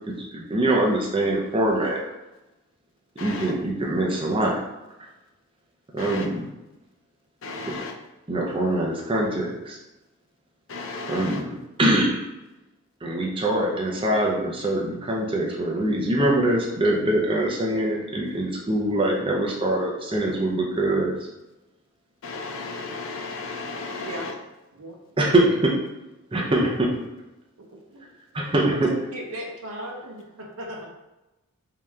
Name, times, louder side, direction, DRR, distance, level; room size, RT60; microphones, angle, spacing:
voice 1, 0.1-2.0 3.2-4.6 5.9-6.5 7.7-7.8 8.3-9.8 11.1-12.2 13.0-21.1 25.2-25.7 26.3-26.9 28.3-28.9, right 1 dB, 25° right, 0.6 m, -23 dB
voice 2, 3.2-3.5 6.0-6.3 7.4-7.9 10.7-11.4 22.2-24.3, left 3 dB, 60° left, 0.6 m, -34 dB
voice 3, 24.7-25.3 26.5-26.6 27.6-28.1 28.7-30.9, right 1 dB, 80° right, 0.8 m, -37 dB
3.2 x 2.8 x 3.6 m
head